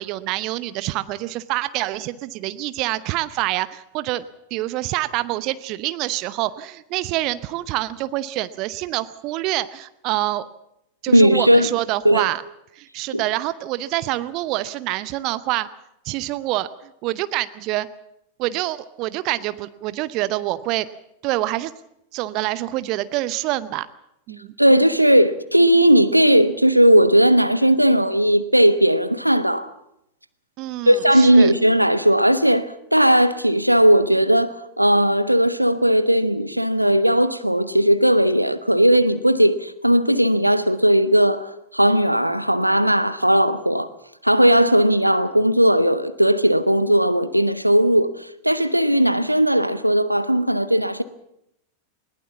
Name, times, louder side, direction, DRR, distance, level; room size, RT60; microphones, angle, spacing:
voice 1, 0.0-4.2 4.5-10.5 11.0-12.4 12.7-15.7 16.0-17.9 18.4-20.9 21.2-21.7 22.1-23.9 24.3-24.5 30.6-31.5, right 16 dB, 40° right, 0.8 m, -26 dB
voice 2, 11.1-11.7 12.0-12.3 13.1-13.2 24.6-29.7 30.9-43.9 44.2-51.0, equal, 90° right, 1.0 m, -17 dB
20.5 x 19.5 x 7.2 m
figure-of-eight pair, 90°, 0 cm